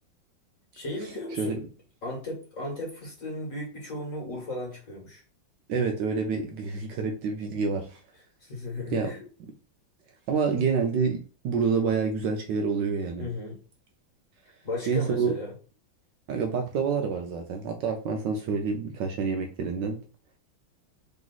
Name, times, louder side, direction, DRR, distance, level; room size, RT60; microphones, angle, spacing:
voice 1, 0.7-1.6 2.0-5.2 8.4-9.2 13.2-13.6 14.6-15.5, left 2 dB, 45° left, -2 dB, 1.7 m, -35 dB
voice 2, 5.7-8.0 8.9-9.1 10.3-13.3 14.9-15.4 16.3-20.0, right 5 dB, 70° right, 3 dB, 1.1 m, -27 dB
3.6 x 3.0 x 3.9 m, 0.37 s
omnidirectional pair, 2.2 m